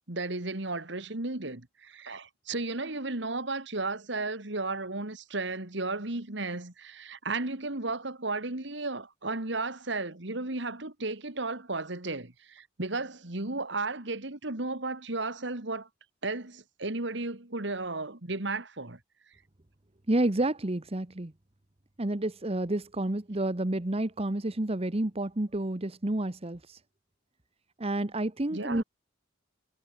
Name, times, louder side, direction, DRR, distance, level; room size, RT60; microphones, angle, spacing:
voice 1, 0.0-15.9 16.2-19.0 28.5-28.8, right 3 dB, 65° right, 2.4 m, -34 dB
voice 2, 20.1-21.3 22.0-26.8 27.8-28.8, right 1 dB, 30° right, 1.1 m, -30 dB
head